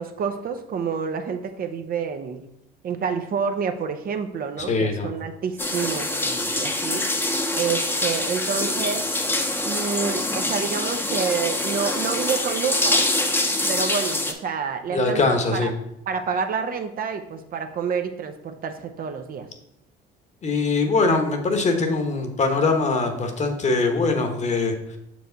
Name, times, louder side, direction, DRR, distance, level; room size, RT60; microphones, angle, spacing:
voice 1, 0.0-2.4 2.8-7.0 7.5-9.1 9.6-13.0 13.7-15.7 16.1-19.5, right 6 dB, 45° right, 7 dB, 0.7 m, -28 dB
voice 2, 4.7-5.1 14.9-15.7 20.4-24.7, left 3 dB, 35° left, 5 dB, 1.2 m, -22 dB
sound 1, 5.6-14.3, left 1 dB, 10° left, 0.9 m, -25 dB
6.4 x 4.7 x 4.0 m, 0.81 s
supercardioid pair, 90°, 20 cm